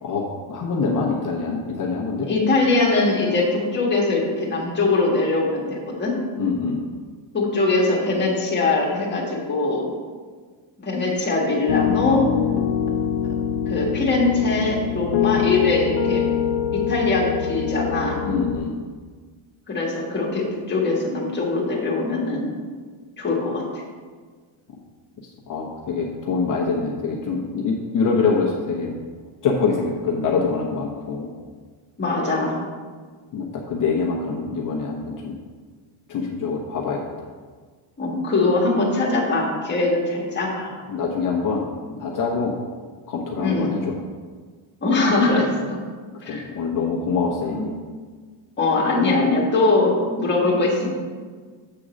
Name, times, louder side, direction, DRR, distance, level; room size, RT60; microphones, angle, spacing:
voice 1, 0.0-2.3 6.3-6.8 12.5-12.6 18.2-18.7 25.5-28.9 29.4-31.3 33.3-35.3 36.1-37.3 40.9-41.7 42.0-42.5 43.1-43.9 46.3-47.7, left 4 dB, 40° left, -2 dB, 0.9 m, -25 dB
voice 2, 2.3-6.2 7.3-9.9 10.8-12.3 13.7-16.2 16.7-18.2 19.7-22.5 23.2-23.8 32.0-32.6 38.0-40.7 43.4-43.8 44.8-45.8 46.2-46.4 47.4-47.6 48.6-50.9, left 3 dB, 20° left, -3 dB, 1.5 m, -22 dB
Piano, 11.7-18.6, left 8 dB, 85° left, 0.7 m, -24 dB
7.7 x 3.7 x 6.3 m, 1.5 s
cardioid pair, 165°, 48 cm